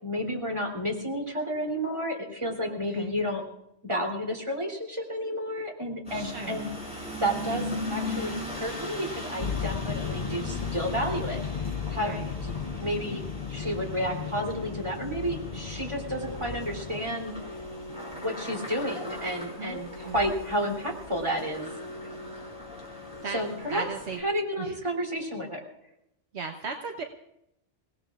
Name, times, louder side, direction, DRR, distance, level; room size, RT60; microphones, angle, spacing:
voice 1, 0.0-3.4 3.8-12.1 12.4-12.5 12.8-13.2 13.5-17.3 18.2-21.7 23.3-23.8 24.2-25.6, equal, 25° right, 0 dB, 3.1 m, -31 dB
voice 2, 2.6-3.2 6.1-6.6 12.0-12.3 19.6-20.2 23.2-23.4 23.7-24.2 24.6-24.8 26.3-27.0, right 5 dB, 65° right, 3 dB, 1.3 m, -37 dB
sound 1, 6.1-24.2, left 1 dB, 5° right, 5.6 m, -39 dB
sound 2, 9.4-17.1, left 6 dB, 40° left, 0.6 m, -35 dB
Organ, 13.6-24.6, left 2 dB, 75° left, 1.1 m, -44 dB
29.0 x 17.5 x 2.5 m, 0.79 s
omnidirectional pair, 1.2 m